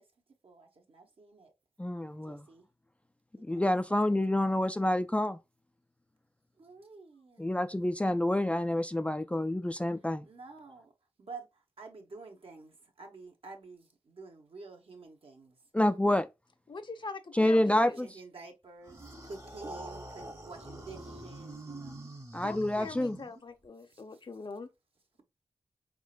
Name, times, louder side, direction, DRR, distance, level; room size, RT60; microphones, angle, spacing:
voice 1, 0.4-1.5 2.3-2.6 3.5-3.6 4.4-4.6 6.6-7.5 10.2-10.9 11.2-11.5 11.8-15.5 17.7-22.0, right 3 dB, 70° right, 1.1 m, -49 dB
voice 2, 1.8-2.5 3.4-5.4 7.4-10.3 15.7-16.3 17.3-18.1 22.3-23.2, left 1 dB, 10° left, 0.3 m, -28 dB
voice 3, 16.7-18.0 22.3-24.7, left 4 dB, 50° left, 0.7 m, -43 dB
sound 1, 18.8-23.7, right 1 dB, 30° right, 1.0 m, -45 dB
4.3 x 3.7 x 2.4 m
cardioid pair, 55°, 10 cm